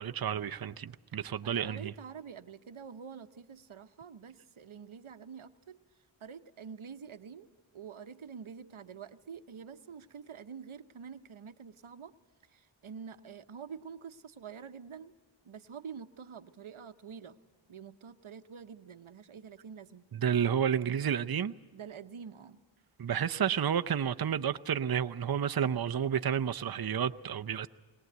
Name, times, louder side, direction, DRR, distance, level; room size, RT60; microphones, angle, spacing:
voice 1, 0.0-1.9 20.1-21.5 23.0-27.7, right 8 dB, 50° right, 0.6 m, -31 dB
voice 2, 1.4-5.8 6.2-12.1 12.5-15.1 15.4-17.4 17.7-20.1 21.7-22.6, right 6 dB, 90° right, 0.9 m, -47 dB
22.5 x 19.0 x 8.0 m
wide cardioid pair, 60°, 48 cm